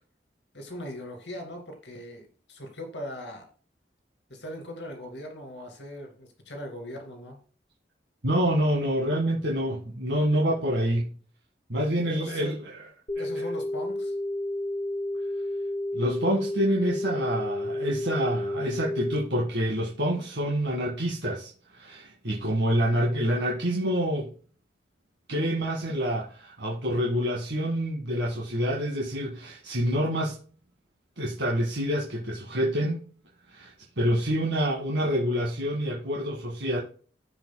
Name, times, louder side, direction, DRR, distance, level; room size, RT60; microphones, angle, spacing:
voice 1, 0.5-3.5 4.3-7.4 12.1-12.5 13.2-14.1, left 1 dB, 80° left, 2.6 m, -40 dB
voice 2, 8.2-11.1 11.7-12.5 13.3-13.4 15.9-24.3 25.3-30.3 31.2-33.0 33.5-36.8, equal, 75° right, 1.8 m, -27 dB
sound 1, 13.1-19.2, left 1 dB, 25° left, 1.4 m, -31 dB
15.5 x 5.1 x 2.2 m
head